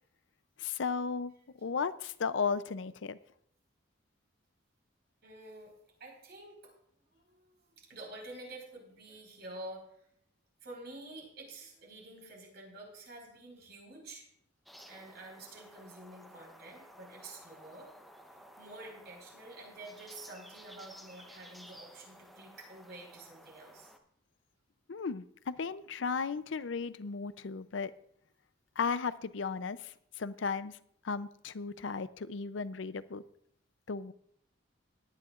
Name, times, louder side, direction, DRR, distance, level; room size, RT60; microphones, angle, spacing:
voice 1, 0.6-1.3 1.6-3.2 24.9-27.9 28.8-30.8 31.0-33.2 33.9-34.1, left 5 dB, 75° left, 15 dB, 0.5 m, -35 dB
voice 2, 5.2-5.7 6.0-6.7 7.1-9.8 10.6-14.2 14.9-17.9 18.6-23.9, right 2 dB, 60° right, -1 dB, 4.8 m, -49 dB
sound 1, 14.7-24.0, equal, ahead, 0.8 m, -55 dB
18.5 x 10.5 x 2.5 m, 0.69 s
head